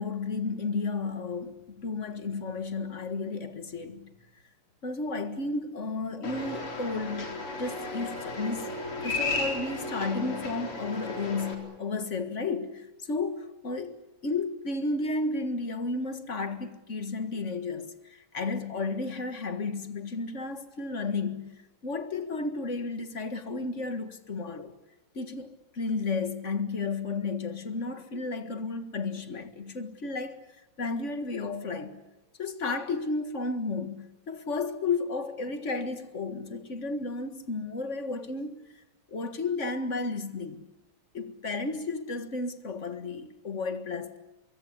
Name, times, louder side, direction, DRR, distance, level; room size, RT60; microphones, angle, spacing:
voice 1, 0.0-4.1 4.8-8.7 9.0-21.6 21.8-24.8 25.1-30.4 30.8-32.0 32.4-38.6 39.1-40.7 41.1-44.2, left 3 dB, 35° left, 1.8 m, -33 dB
sound 1, 6.2-11.5, left 3 dB, 80° left, 5.0 m, -34 dB
25.0 x 23.0 x 8.5 m
omnidirectional pair, 2.4 m